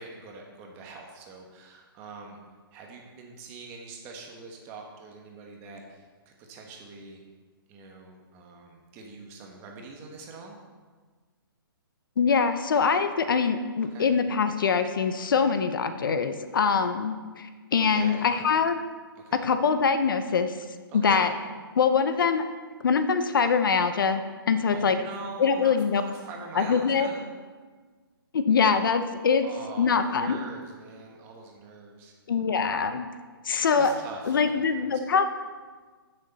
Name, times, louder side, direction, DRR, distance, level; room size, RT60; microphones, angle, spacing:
voice 1, 0.0-2.4 2.7-7.2 7.7-10.6 13.9-14.1 17.9-18.6 19.2-19.5 20.9-21.3 24.7-27.3 29.4-32.1 33.7-34.4 34.8-35.0, right 3 dB, 20° right, 1 dB, 1.1 m, -43 dB
voice 2, 12.2-18.8 19.3-20.5 20.9-21.3 21.8-22.5 22.8-25.0 25.4-26.0 26.5-27.1 28.3-29.5 29.8-30.4 32.3-33.1 33.4-33.9 34.3-35.2, left 5 dB, 60° left, 9 dB, 0.8 m, -23 dB
14.5 x 6.6 x 4.1 m, 1.4 s
hypercardioid pair, 165°, 13 cm